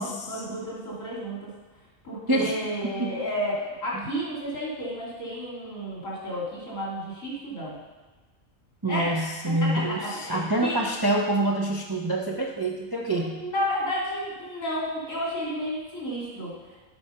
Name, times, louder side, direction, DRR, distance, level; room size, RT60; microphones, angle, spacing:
voice 1, 0.0-1.5 2.0-7.8 8.9-10.8 13.1-16.5, equal, 90° left, -5 dB, 2.9 m, -32 dB
voice 2, 2.3-2.6 2.8-3.1 8.8-13.4, right 1 dB, 30° right, 1 dB, 0.4 m, -26 dB
8.7 x 4.8 x 5.5 m, 1.3 s
omnidirectional pair, 1.3 m